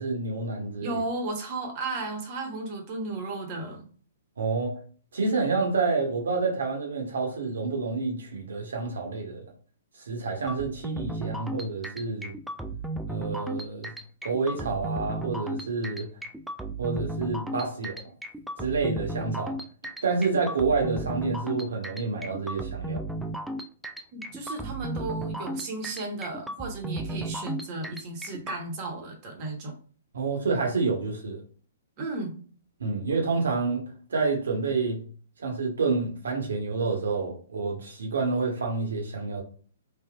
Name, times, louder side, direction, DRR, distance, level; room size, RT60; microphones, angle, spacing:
voice 1, 0.0-1.0 4.4-4.7 5.1-9.4 10.1-12.3 13.1-13.9 14.2-16.1 16.8-18.0 18.6-19.5 20.0-23.0 30.1-31.4 32.8-35.0 35.4-39.4, right 4 dB, 70° right, 1.3 m, -28 dB
voice 2, 0.8-3.9 24.1-29.7 32.0-32.3, right 3 dB, 40° right, 1.2 m, -34 dB
sound 1, 10.5-28.6, right 1 dB, ahead, 0.3 m, -35 dB
3.6 x 2.5 x 2.4 m
figure-of-eight pair, 120°, 0 cm